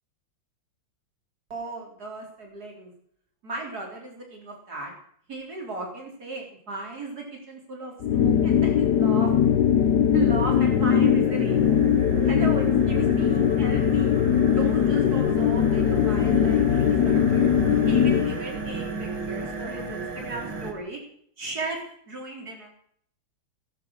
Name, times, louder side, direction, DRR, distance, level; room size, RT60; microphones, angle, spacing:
voice 1, 1.5-2.9 3.4-4.9 5.3-9.3 10.1-11.6 12.2-14.2 14.5-21.0 21.4-21.8 22.1-22.7, right 3 dB, 45° right, 0 dB, 4.4 m, -35 dB
sound 1, 8.0-18.4, left 9 dB, 60° left, 1.2 m, -21 dB
sound 2, 10.2-20.7, right 3 dB, 60° right, 2.9 m, -34 dB
18.0 x 10.5 x 6.5 m, 0.65 s
omnidirectional pair, 2.3 m